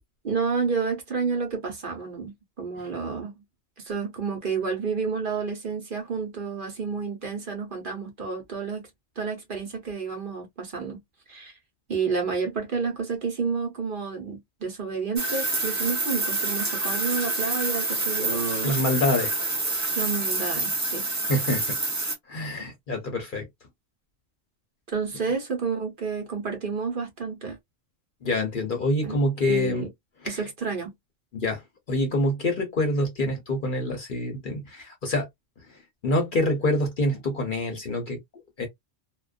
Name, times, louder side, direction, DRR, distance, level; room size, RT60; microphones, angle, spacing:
voice 1, 0.2-3.3 3.8-8.9 9.2-11.0 11.3-11.5 11.9-18.8 20.0-21.1 24.9-27.6 29.0-29.2 29.5-29.9 30.2-30.9, right 5 dB, 50° right, 0.9 m, -30 dB
sound 1, 15.2-22.1, right 2 dB, 20° right, 0.5 m, -27 dB
voice 2, 18.6-19.3 21.3-21.8 22.3-23.5 28.2-29.9 30.2-30.4 31.3-31.6 31.9-35.3 36.0-38.2 38.6-38.7, left 1 dB, 50° left, 0.7 m, -26 dB
2.4 x 2.2 x 2.4 m
omnidirectional pair, 1.3 m